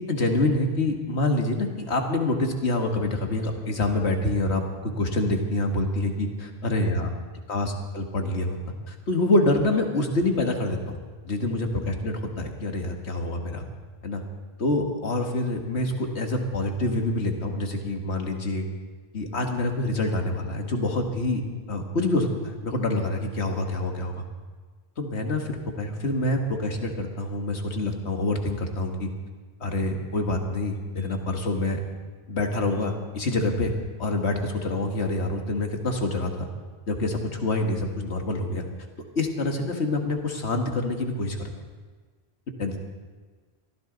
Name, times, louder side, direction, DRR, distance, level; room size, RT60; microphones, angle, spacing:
voice 1, 0.1-7.1 7.5-8.6 8.9-11.0 11.2-13.6 14.0-14.2 14.6-18.6 19.1-21.4 21.7-24.2 25.0-29.1 29.6-31.8 32.3-33.7 34.0-36.5 36.9-38.6 39.2-41.5 42.6-42.8, left 2 dB, 90° left, 3 dB, 2.0 m, -26 dB
23.0 x 15.0 x 4.0 m, 1.4 s
omnidirectional pair, 1.1 m